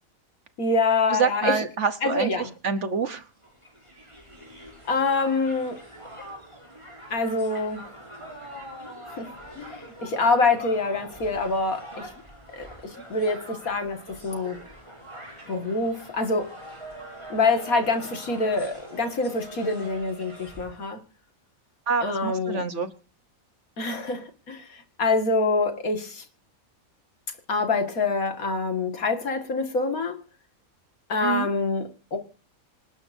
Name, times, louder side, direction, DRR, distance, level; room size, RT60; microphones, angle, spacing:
voice 1, 0.6-1.6 2.0-2.5 4.9-5.8 7.1-7.8 9.2-9.3 9.6-12.1 12.5-14.6 15.5-16.5 17.3-21.0 22.0-22.6 23.8-24.6 25.0-26.2 27.5-30.2 31.1-32.2, left 3 dB, 80° left, 2.4 m, -25 dB
voice 2, 1.1-3.2 21.9-22.9 31.2-31.5, right 6 dB, 60° right, 1.3 m, -27 dB
Crowd, 3.4-20.8, right 1 dB, 20° right, 7.2 m, -43 dB
27.0 x 11.5 x 2.7 m
omnidirectional pair, 1.5 m